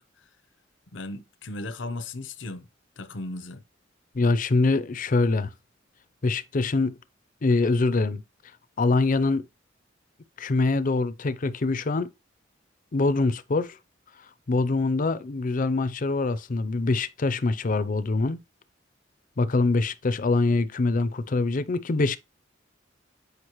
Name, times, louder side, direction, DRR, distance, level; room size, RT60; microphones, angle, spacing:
voice 1, 0.9-2.7 3.0-3.6, left 2 dB, 75° left, 0.8 m, -36 dB
voice 2, 4.1-5.5 6.2-6.9 7.4-8.2 8.8-9.4 10.4-12.1 12.9-13.8 14.5-18.4 19.4-22.2, left 3 dB, 45° left, 0.5 m, -24 dB
8.0 x 5.2 x 3.0 m
head